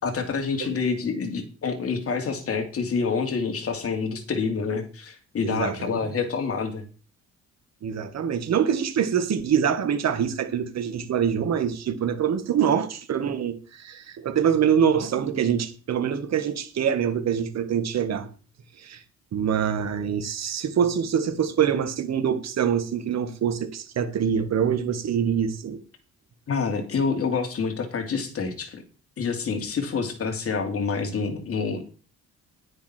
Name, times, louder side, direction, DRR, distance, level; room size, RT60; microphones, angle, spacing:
voice 1, 0.0-6.8 26.5-28.8 29.2-31.9, left 5 dB, 50° left, 2.7 m, -27 dB
voice 2, 5.4-5.9 7.8-18.3 18.8-19.0 19.3-25.8, right 8 dB, 60° right, 1.7 m, -25 dB
10.0 x 9.6 x 4.4 m
cardioid pair, 90°, 30 cm